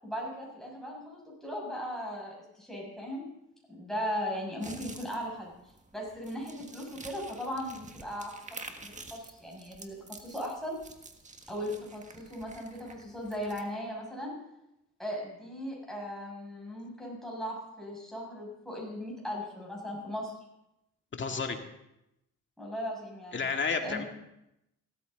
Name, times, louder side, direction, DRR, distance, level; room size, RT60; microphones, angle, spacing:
voice 1, 0.0-3.2 3.7-5.5 5.9-10.8 11.5-14.3 15.0-20.3 22.6-23.5 23.8-24.0, equal, ahead, -3 dB, 6.8 m, -38 dB
sound 1, 4.6-13.6, right 3 dB, 25° right, 1.6 m, -49 dB
voice 2, 21.1-21.6 23.3-24.0, left 5 dB, 40° left, 4 dB, 2.0 m, -31 dB
16.0 x 13.5 x 3.9 m, 0.84 s
cardioid pair, 90°, 30 cm